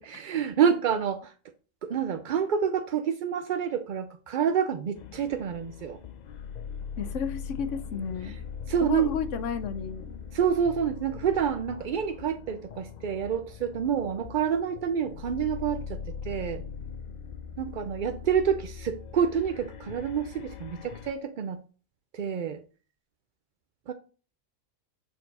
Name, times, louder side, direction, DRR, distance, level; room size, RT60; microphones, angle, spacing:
voice 1, 0.0-1.3 1.8-6.0 8.2-8.4 8.7-9.1 10.3-16.6 17.6-21.6 22.1-22.6 23.9-24.0, right 8 dB, 60° right, 0.5 m, -28 dB
sound 1, 5.0-21.1, left 6 dB, 90° left, 0.3 m, -41 dB
voice 2, 7.0-8.4 8.8-10.2, left 6 dB, 65° left, 1.1 m, -32 dB
7.6 x 4.5 x 4.0 m
omnidirectional pair, 1.4 m